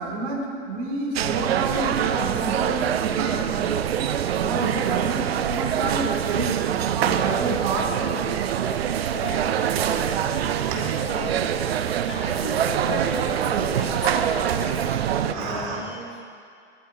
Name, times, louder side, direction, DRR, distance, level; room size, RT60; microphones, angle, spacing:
voice 1, 0.0-3.7 4.4-6.6 6.9-8.2 10.7-10.9 15.2-15.8, right 3 dB, 45° right, -1 dB, 2.4 m, -29 dB
sound 1, 1.1-15.3, right 9 dB, 60° right, 0.6 m, -25 dB
voice 2, 4.7-5.0 8.6-10.2 10.8-16.2, left 2 dB, 80° left, -4 dB, 3.0 m, -36 dB
sound 2, 6.9-14.6, equal, 80° right, 3.6 m, -43 dB
18.5 x 12.0 x 2.8 m, 2.4 s
figure-of-eight pair, 100°, 35 cm